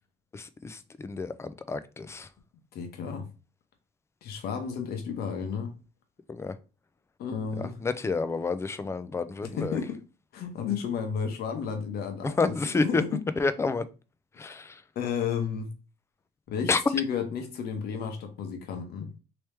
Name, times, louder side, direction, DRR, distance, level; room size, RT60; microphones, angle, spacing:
voice 1, 0.3-2.3 6.3-6.6 7.6-9.8 12.2-13.0 13.4-13.8 14.4-14.8 16.7-16.8, left 4 dB, 15° left, 0.3 m, -29 dB
voice 2, 2.7-3.3 4.2-5.7 7.2-7.7 9.6-10.0 10.3-12.5 12.8-13.1 14.4-14.5 14.9-15.7 16.5-19.1, left 6 dB, 65° left, 1.0 m, -32 dB
3.1 x 3.0 x 3.4 m
cardioid pair, 110°, 17 cm